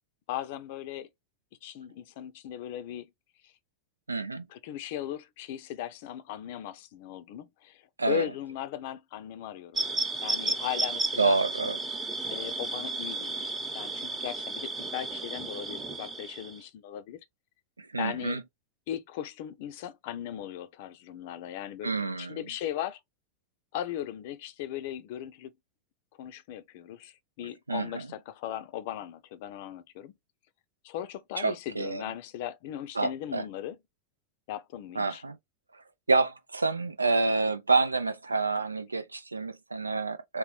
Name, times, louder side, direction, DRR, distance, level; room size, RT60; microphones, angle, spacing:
voice 1, 0.3-1.1 1.6-3.1 3.4-3.5 4.5-9.8 10.2-11.4 12.3-17.2 18.0-18.4 18.9-21.9 22.2-23.0 23.7-25.5 26.2-30.1 30.8-33.8 34.5-35.2, left 11 dB, 50° left, 0.5 m, -38 dB
voice 2, 4.1-4.5 8.0-8.3 11.2-11.8 17.8-18.4 21.8-22.4 27.7-28.1 31.4-32.0 33.0-33.5 35.0-35.4 35.7-40.4, right 3 dB, 80° right, 0.4 m, -28 dB
sound 1, 9.7-16.6, right 3 dB, 15° right, 0.9 m, -33 dB
3.8 x 2.2 x 3.0 m
figure-of-eight pair, 90°, 0 cm